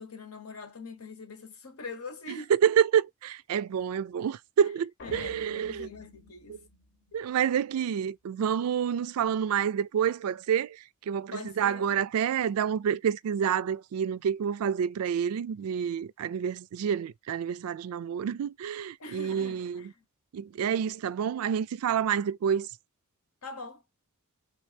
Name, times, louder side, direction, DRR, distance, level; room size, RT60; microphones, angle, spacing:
voice 1, 0.0-2.5 5.0-6.6 7.1-7.2 7.8-8.0 11.3-11.9 19.0-20.0 23.4-23.8, left 3 dB, 80° left, 1.0 m, -43 dB
voice 2, 2.5-5.9 7.1-19.9 20.3-22.7, right 8 dB, 80° right, 0.3 m, -28 dB
sound 1, 5.0-7.5, left 2 dB, 55° left, 0.8 m, -49 dB
3.4 x 3.2 x 3.2 m
head